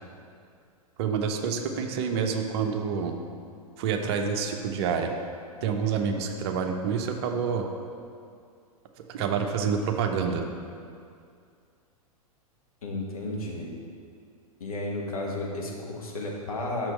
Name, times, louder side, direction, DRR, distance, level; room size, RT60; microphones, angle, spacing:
voice 1, 1.0-3.1 3.8-5.1 5.6-7.6 9.1-10.4, right 6 dB, 45° right, 4 dB, 0.7 m, -27 dB
voice 2, 12.8-13.7 14.6-16.9, left 2 dB, 65° left, -2 dB, 1.4 m, -33 dB
6.1 x 4.4 x 6.2 m, 2.3 s
figure-of-eight pair, 100°, 19 cm